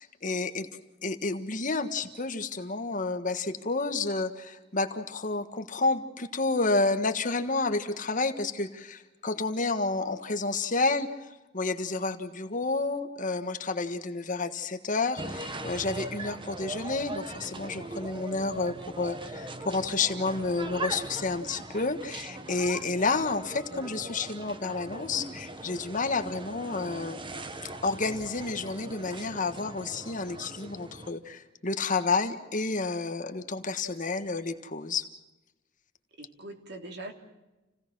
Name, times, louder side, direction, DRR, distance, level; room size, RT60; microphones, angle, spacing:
voice 1, 0.2-0.7 1.0-11.1 11.5-27.2 27.8-35.0, left 3 dB, 45° left, 8 dB, 1.5 m, -30 dB
sound 1, 15.2-31.1, right 2 dB, 25° right, 1.3 m, -40 dB
voice 2, 36.2-37.1, right 2 dB, 60° right, 4 dB, 3.1 m, -42 dB
29.0 x 17.0 x 6.2 m, 1.0 s
head